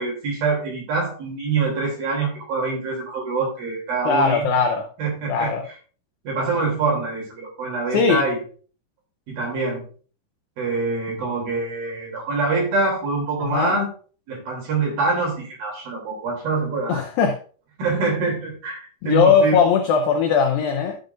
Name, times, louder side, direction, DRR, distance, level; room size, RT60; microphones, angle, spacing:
voice 1, 0.0-4.5 5.0-5.7 6.2-8.4 9.3-9.8 10.6-13.9 14.3-17.0 17.8-18.8 19.0-19.6, right 3 dB, 55° right, 4.6 m, -25 dB
voice 2, 4.0-4.9 5.3-5.6 7.9-8.2 13.4-13.7 16.9-17.4 19.0-21.0, left 6 dB, 85° left, 2.0 m, -19 dB
13.0 x 6.6 x 2.6 m
omnidirectional pair, 5.2 m